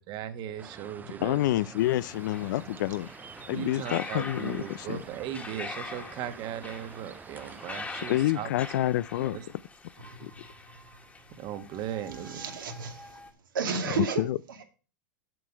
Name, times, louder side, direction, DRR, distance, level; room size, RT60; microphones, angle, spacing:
voice 1, 0.0-1.4 3.5-8.5 9.3-9.4 11.4-12.4, right 10 dB, 45° right, 1.5 m, -37 dB
sound 1, 0.6-8.3, right 6 dB, 15° right, 0.4 m, -48 dB
voice 2, 1.2-3.1 3.5-5.0 8.1-9.4 10.2-10.3 14.0-14.4, left 15 dB, 65° left, 0.5 m, -28 dB
sound 2, 1.8-13.3, left 3 dB, 10° left, 1.6 m, -44 dB
voice 3, 9.2-9.5 10.0-11.4 12.1-13.2 13.5-14.2 14.5-14.6, right 5 dB, 85° right, 2.4 m, -35 dB
8.4 x 7.8 x 4.6 m
hypercardioid pair, 110°, 11 cm